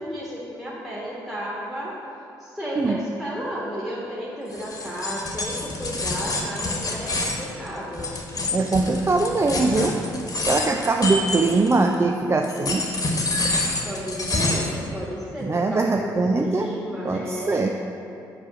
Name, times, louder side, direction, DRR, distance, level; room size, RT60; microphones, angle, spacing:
voice 1, 0.0-1.9 2.4-8.1 13.8-17.7, equal, 5° right, -7 dB, 1.5 m, -33 dB
sound 1, 4.5-11.9 12.4-14.8, left 2 dB, 35° left, 1.3 m, -27 dB
voice 2, 8.5-10.0 10.5-12.9 15.4-16.7 17.0-17.7, right 3 dB, 25° right, 3 dB, 0.4 m, -22 dB
5.0 x 4.9 x 6.2 m, 2.6 s
hypercardioid pair, 45°, 10 cm